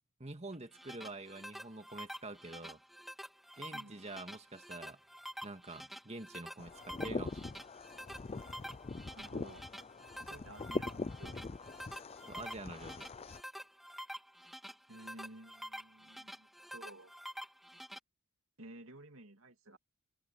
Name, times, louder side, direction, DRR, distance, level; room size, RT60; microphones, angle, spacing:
voice 1, 0.2-2.8 3.6-5.0 5.4-7.6 12.3-13.1, right 2 dB, 30° right, 2.1 m, -47 dB
sound 1, 0.5-18.0, equal, ahead, 2.3 m, -48 dB
voice 2, 3.7-4.0 9.1-9.6 10.2-11.5 14.9-17.1 18.6-19.8, right 1 dB, 60° right, 2.6 m, -54 dB
sound 2, 6.6-13.4, left 3 dB, 25° left, 0.4 m, -43 dB
head